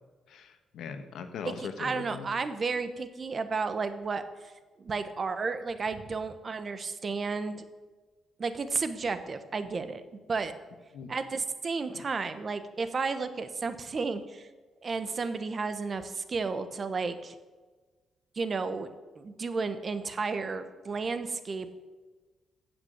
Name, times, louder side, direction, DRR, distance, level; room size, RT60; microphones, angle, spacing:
voice 1, 0.3-2.3 10.9-11.1, left 6 dB, 80° left, 8 dB, 1.3 m, -40 dB
voice 2, 1.4-4.5 4.8-7.6 8.4-10.0 10.3-10.5 11.1-14.5 14.8-17.4 18.3-18.9 19.1-21.7, right 4 dB, 40° right, 10 dB, 1.1 m, -32 dB
15.5 x 6.0 x 8.0 m, 1.3 s
cardioid pair, 100°, 0 cm